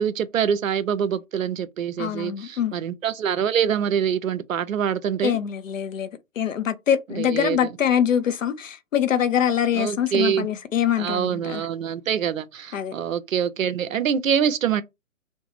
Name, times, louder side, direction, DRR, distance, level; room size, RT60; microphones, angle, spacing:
voice 1, 0.0-5.4 7.1-7.6 9.7-10.5 11.0-14.8, right 8 dB, 75° right, 0.5 m, -25 dB
voice 2, 2.0-2.7 5.2-6.1 6.4-11.7 12.7-12.9, left 9 dB, 70° left, 0.5 m, -24 dB
2.4 x 2.2 x 3.0 m
figure-of-eight pair, 125°, 40 cm